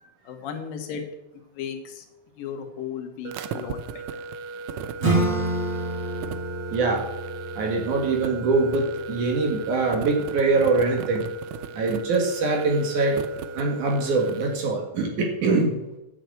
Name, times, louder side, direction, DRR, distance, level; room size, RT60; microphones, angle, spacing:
voice 1, 0.3-1.0 1.6-2.0 2.4-4.0, left 7 dB, 70° left, 4 dB, 3.2 m, -35 dB
sound 1, 3.2-14.6, right 5 dB, 80° right, 1.6 m, -36 dB
Acoustic guitar / Strum, 5.0-10.2, right 2 dB, 35° right, 3.5 m, -29 dB
voice 2, 6.7-7.0 7.6-11.2 11.7-13.2 13.6-15.8, right 3 dB, 60° right, 1 dB, 3.1 m, -23 dB
11.0 x 7.8 x 8.0 m, 0.95 s
omnidirectional pair, 4.2 m